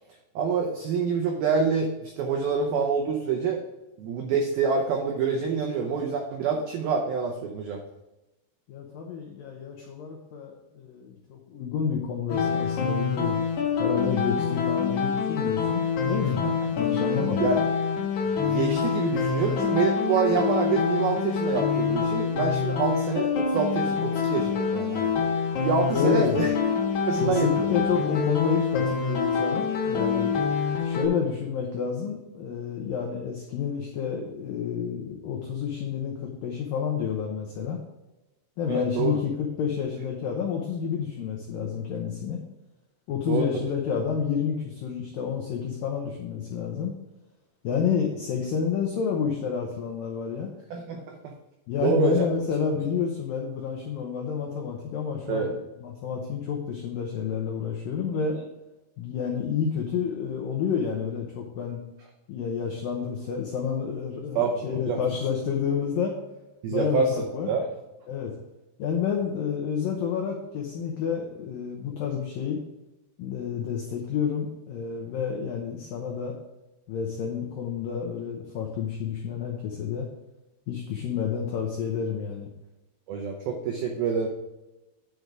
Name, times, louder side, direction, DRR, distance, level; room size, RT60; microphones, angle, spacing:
voice 1, 0.4-3.6 4.0-7.8 16.4-16.5 17.2-17.6 18.4-25.1 25.6-26.5 27.1-27.7 38.7-39.2 43.3-43.5 50.7-51.3 51.8-52.3 55.3-55.5 64.4-65.0 66.6-67.1 67.5-67.6 83.1-84.3, right 5 dB, 85° right, 2 dB, 2.1 m, -26 dB
voice 2, 8.7-13.4 13.8-17.5 25.9-26.4 27.2-30.3 30.8-37.8 38.6-42.4 43.1-46.9 47.6-50.5 51.7-58.4 59.0-61.8 62.3-66.1 66.7-67.5 68.1-68.3 68.8-72.6 73.2-76.4 76.9-80.1 80.7-82.5, left 7 dB, 85° left, 0 dB, 2.0 m, -29 dB
sound 1, 12.3-31.1, left 6 dB, 65° left, 2.0 m, -26 dB
9.8 x 5.3 x 4.7 m, 0.99 s
omnidirectional pair, 5.5 m